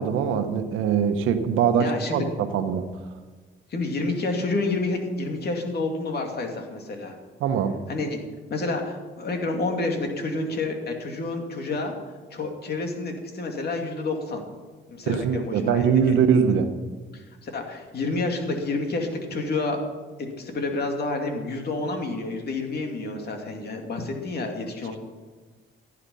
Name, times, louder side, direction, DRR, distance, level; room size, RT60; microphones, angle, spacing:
voice 1, 0.0-2.9 7.4-7.8 15.1-16.7, right 7 dB, 90° right, 8 dB, 1.2 m, -22 dB
voice 2, 1.8-2.2 3.7-7.2 7.9-8.2 8.5-11.9 12.3-14.4 14.9-16.2 17.1-19.8 20.2-25.0, left 3 dB, 55° left, 3 dB, 2.8 m, -29 dB
15.5 x 9.9 x 5.6 m, 1.4 s
cardioid pair, 90°, 20 cm